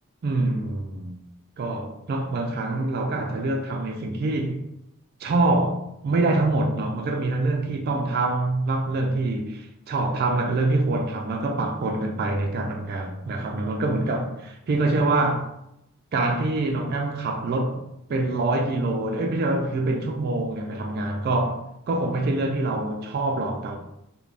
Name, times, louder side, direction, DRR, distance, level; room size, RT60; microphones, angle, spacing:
voice 1, 0.2-1.2 1.6-4.6 5.2-15.5 16.1-17.8 18.1-23.8, right 2 dB, 45° right, 0.3 m, -25 dB
2.4 x 2.1 x 3.2 m
head